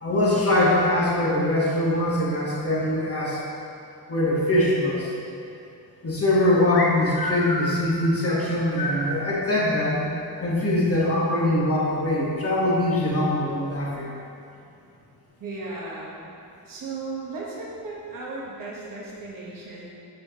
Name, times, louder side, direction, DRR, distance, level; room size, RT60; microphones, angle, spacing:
voice 1, 0.0-3.4 4.1-5.1 6.0-10.0 10.4-14.1, left 1 dB, 40° left, -6 dB, 1.3 m, -22 dB
sound 1, 6.7-9.2, left 2 dB, 75° left, 0.9 m, -30 dB
voice 2, 15.4-16.2 16.7-19.9, right 3 dB, 55° right, -4 dB, 1.1 m, -35 dB
7.8 x 6.3 x 2.9 m, 2.6 s
wide cardioid pair, 160°, 38 cm